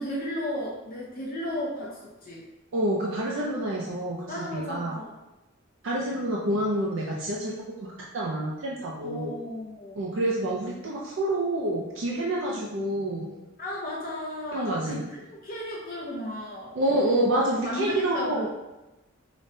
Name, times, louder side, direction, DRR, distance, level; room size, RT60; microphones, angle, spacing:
voice 1, 0.0-2.5 4.3-5.1 9.0-10.0 13.6-15.0 15.3-16.7 17.6-18.5, equal, 45° left, -4 dB, 0.5 m, -34 dB
voice 2, 2.7-5.0 5.8-7.5 7.8-7.9 8.1-9.4 10.0-13.3 14.5-15.0 16.8-18.5, right 1 dB, 60° right, -3 dB, 0.4 m, -27 dB
5.0 x 2.1 x 2.6 m, 1.0 s
head